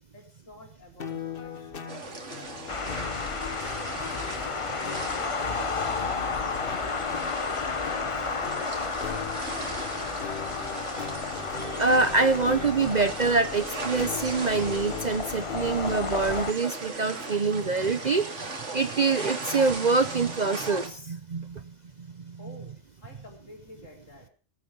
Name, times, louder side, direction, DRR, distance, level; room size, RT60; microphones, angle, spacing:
voice 1, 0.1-4.1 4.7-7.6 8.2-11.0 22.4-22.7 23.0-24.3, left 1 dB, 75° left, 1 dB, 4.3 m, -50 dB
sound 1, 1.0-16.2, left 7 dB, 45° left, 1.2 m, -40 dB
sound 2, 1.9-20.9, right 3 dB, 65° right, 2.5 m, -38 dB
sound 3, 2.7-16.5, left 4 dB, 30° left, 0.7 m, -33 dB
voice 2, 11.5-21.6, right 4 dB, 40° right, 11 dB, 0.7 m, -25 dB
19.0 x 8.6 x 5.2 m, 0.40 s
omnidirectional pair, 1.3 m